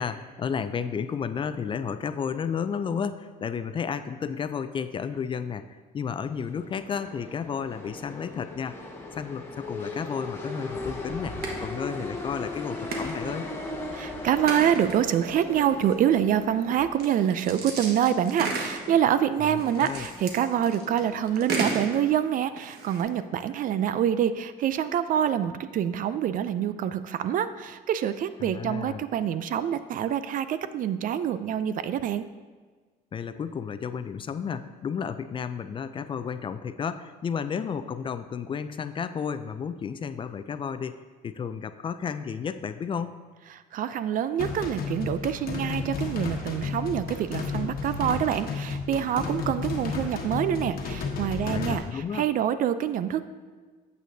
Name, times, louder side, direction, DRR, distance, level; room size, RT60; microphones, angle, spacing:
voice 1, 0.0-8.8 9.1-13.5 19.4-20.1 28.4-29.0 33.1-41.0 41.2-43.1 51.4-52.3, left 6 dB, 30° left, 11 dB, 0.3 m, -32 dB
sound 1, 6.2-22.1, left 2 dB, 15° left, 1.2 m, -39 dB
sound 2, 11.4-11.6 12.2-12.3 12.9-13.2 13.6-13.7 14.5-15.0 15.9-16.0 17.0-19.0 19.5-22.1 22.6-23.0, right 3 dB, 70° right, 1.3 m, -33 dB
voice 2, 13.9-32.3 43.7-53.3, right 9 dB, 55° right, 13 dB, 0.4 m, -26 dB
sound 3, 44.4-51.8, left 5 dB, 60° left, 1.2 m, -32 dB
8.8 x 8.1 x 2.7 m, 1.4 s
cardioid pair, 110°, 17 cm